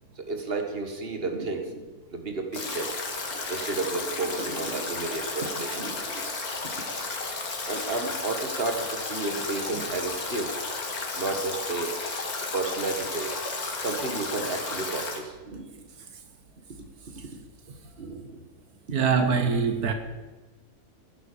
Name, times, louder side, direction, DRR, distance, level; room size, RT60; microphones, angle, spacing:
voice 1, 0.2-2.9 3.3-6.3 7.6-10.5 11.1-11.9 12.5-13.3 13.8-15.8 17.3-17.4 18.0-18.4 19.2-19.5, right 3 dB, 40° right, 2.1 m, -32 dB
Stream / Drip / Trickle dribble, 2.5-15.2, left 3 dB, 75° left, 2.5 m, -33 dB
voice 2, 18.9-19.9, right 5 dB, 85° right, 1.7 m, -24 dB
15.5 x 11.0 x 7.0 m
omnidirectional pair, 1.6 m